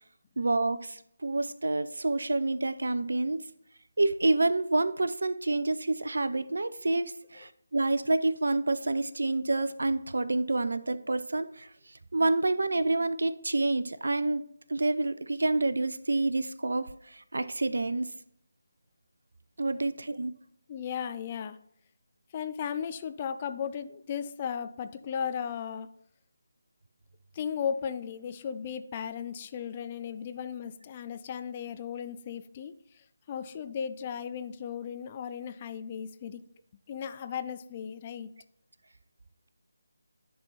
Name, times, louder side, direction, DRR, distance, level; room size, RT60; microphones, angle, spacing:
voice 1, 0.4-3.5 4.0-11.7 12.1-14.4 14.7-18.1 19.6-20.3, right 2 dB, 65° right, 14 dB, 0.5 m, -28 dB
voice 2, 20.7-21.6 22.3-25.9 27.3-36.4 36.9-38.3, left 7 dB, 25° left, 10 dB, 0.4 m, -36 dB
10.5 x 3.5 x 4.2 m, 0.72 s
figure-of-eight pair, 155°, 0 cm